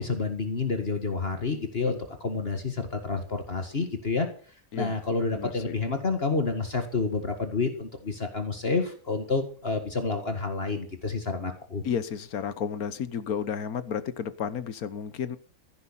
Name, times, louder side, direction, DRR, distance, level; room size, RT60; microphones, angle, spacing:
voice 1, 0.0-4.3 4.7-11.8, left 4 dB, 40° left, 6 dB, 2.0 m, -29 dB
voice 2, 11.8-15.4, left 7 dB, 75° left, 14 dB, 1.5 m, -32 dB
15.5 x 9.4 x 5.6 m, 0.43 s
omnidirectional pair, 1.6 m